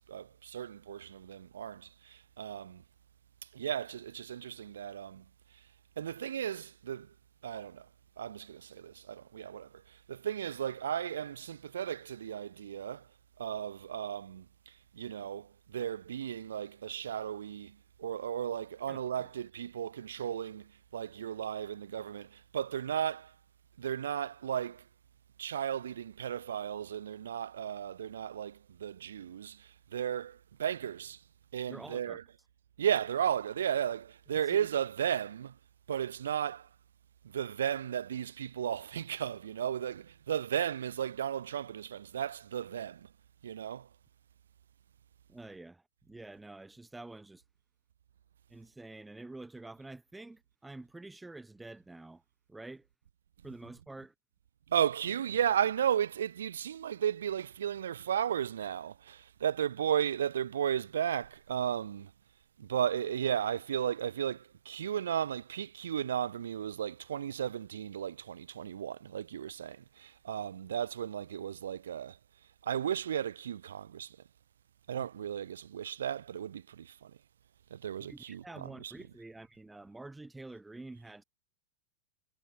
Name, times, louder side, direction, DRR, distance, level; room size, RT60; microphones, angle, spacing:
voice 1, 0.0-2.8 3.5-5.2 6.0-7.1 7.4-7.9 8.2-13.1 13.4-23.3 23.8-24.8 25.4-31.2 31.5-32.2 32.8-35.6 35.9-36.7 37.2-43.1 43.4-43.9 54.7-62.1 62.6-72.2 72.6-74.2 74.9-77.1 77.7-78.9, right 9 dB, 65° right, 0.7 m, -35 dB
voice 2, 31.7-32.2 34.5-34.7 45.3-47.4 48.5-52.2 52.5-52.9 53.4-54.1 78.0-81.2, right 2 dB, 5° right, 2.7 m, -48 dB
figure-of-eight pair, 90°, 0 cm